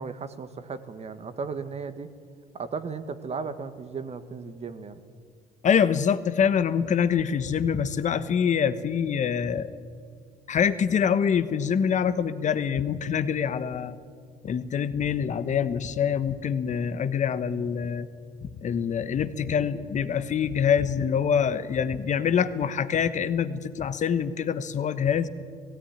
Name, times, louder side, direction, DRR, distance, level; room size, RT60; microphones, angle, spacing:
voice 1, 0.0-2.1 2.5-5.0, right 5 dB, 40° right, 11 dB, 1.5 m, -35 dB
voice 2, 5.6-9.7 10.5-13.9 14.4-18.1 18.6-25.3, left 7 dB, 45° left, 13 dB, 1.2 m, -25 dB
17.5 x 16.5 x 10.0 m, 2.1 s
supercardioid pair, 90°, 17 cm